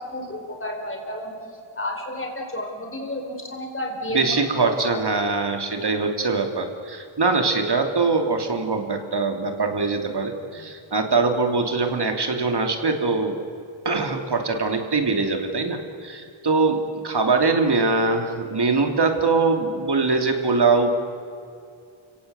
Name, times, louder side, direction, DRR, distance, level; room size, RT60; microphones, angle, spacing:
voice 1, 0.0-1.4 1.8-5.0, left 1 dB, 25° left, 2 dB, 4.4 m, -31 dB
voice 2, 4.1-13.4 13.8-20.9, right 3 dB, 50° right, 4 dB, 3.0 m, -22 dB
29.5 x 17.5 x 8.1 m, 2.5 s
wide cardioid pair, 95°, 50 cm